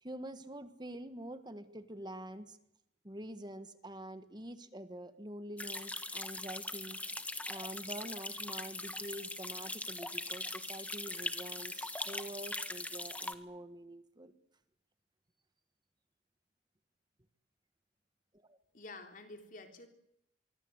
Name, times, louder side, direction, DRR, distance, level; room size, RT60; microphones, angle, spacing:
voice 1, 0.0-2.6 3.0-7.0 7.5-14.3 18.3-18.6, right 1 dB, 25° right, 10 dB, 1.6 m, -46 dB
sound 1, 5.6-13.3, left 2 dB, 10° left, 1.5 m, -41 dB
voice 2, 18.7-19.9, left 2 dB, 50° left, 5 dB, 3.7 m, -49 dB
26.0 x 24.0 x 8.1 m, 0.79 s
head